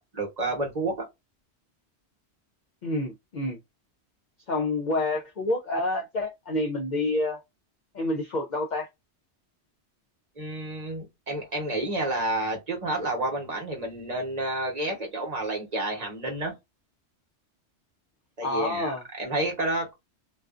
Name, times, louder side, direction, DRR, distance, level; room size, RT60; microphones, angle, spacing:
voice 1, 0.1-1.1 10.4-16.6 18.4-18.9 19.2-19.9, right 2 dB, 40° right, 0.9 m, -30 dB
voice 2, 2.8-3.6 4.5-7.4 7.9-8.9 18.4-19.0, left 2 dB, 55° left, 0.5 m, -28 dB
2.4 x 2.3 x 2.3 m
omnidirectional pair, 1.2 m